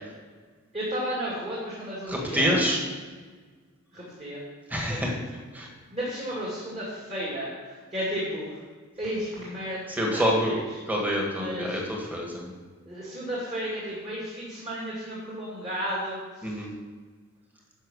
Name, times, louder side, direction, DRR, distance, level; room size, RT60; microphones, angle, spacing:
voice 1, 0.7-2.6 3.9-4.4 4.9-5.1 5.9-8.6 8.9-10.6 11.3-11.9 12.9-16.5, equal, 30° right, -7 dB, 2.5 m, -33 dB
voice 2, 2.1-2.8 4.7-5.1 5.5-5.7 9.9-10.5 10.9-12.5 16.4-16.7, equal, 10° right, -1 dB, 1.7 m, -26 dB
10.5 x 5.8 x 6.4 m, 1.5 s
head